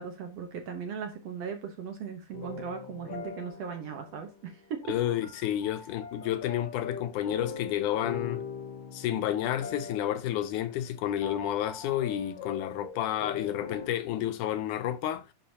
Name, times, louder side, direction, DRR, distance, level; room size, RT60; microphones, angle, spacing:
voice 1, 0.0-4.8, right 6 dB, 65° right, 1.8 m, -38 dB
sound 1, 2.3-13.9, left 6 dB, 60° left, 1.3 m, -42 dB
voice 2, 4.9-8.4 8.9-15.3, left 11 dB, 75° left, 2.0 m, -30 dB
10.5 x 5.7 x 2.8 m
omnidirectional pair, 3.8 m